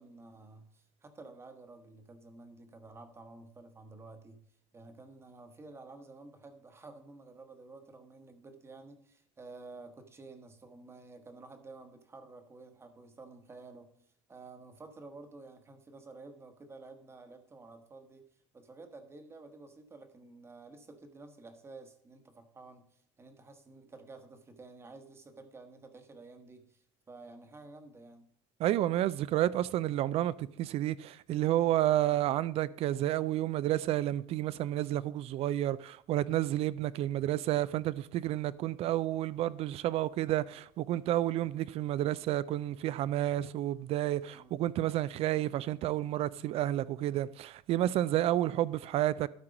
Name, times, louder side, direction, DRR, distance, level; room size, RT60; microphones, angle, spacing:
voice 1, 0.0-4.4 4.7-13.9 14.3-28.3 44.3-44.6, right 3 dB, 15° right, 1.1 m, -51 dB
voice 2, 28.6-49.3, right 13 dB, 45° right, 0.4 m, -30 dB
12.5 x 4.5 x 5.0 m
cardioid pair, 145°, 15 cm